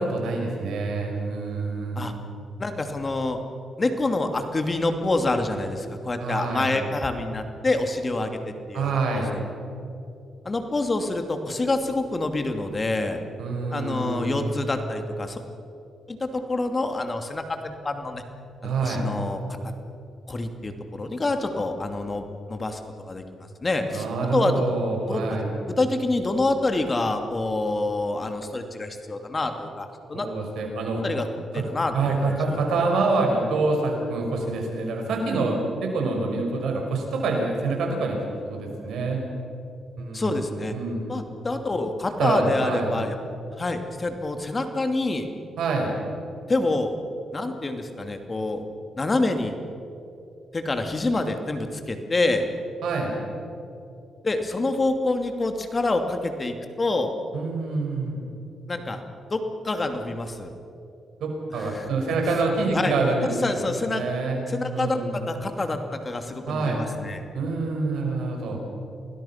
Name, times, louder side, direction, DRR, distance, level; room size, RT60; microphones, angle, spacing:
voice 1, 0.0-2.1 6.2-6.7 8.7-9.3 13.4-14.5 18.6-19.1 23.9-25.5 30.1-31.0 31.5-31.6 31.9-38.2 38.5-39.2 40.0-40.4 40.7-41.0 42.2-42.9 45.6-45.9 52.8-53.1 57.3-58.2 61.2-63.4 63.8-64.4 64.7-65.2 66.5-66.8 67.3-68.6, right 3 dB, 80° right, 1 dB, 5.6 m, -26 dB
voice 2, 2.6-3.4 3.8-8.3 8.7-9.2 10.4-13.2 13.7-15.4 16.1-18.2 18.6-19.4 20.3-22.8 23.1-23.2 23.6-24.1 24.3-24.7 25.1-25.2 25.8-30.3 31.0-31.3 31.5-32.6 40.1-40.7 41.1-43.2 43.6-45.3 46.5-46.9 47.3-48.6 49.0-49.5 50.5-52.5 54.2-57.2 58.7-59.0 59.3-60.5 61.6-61.9 62.7-63.0 63.2-64.0 64.5-67.2, left 2 dB, 30° left, 6 dB, 2.6 m, -27 dB
28.5 x 20.5 x 5.9 m, 2.6 s
cardioid pair, 70°, 0 cm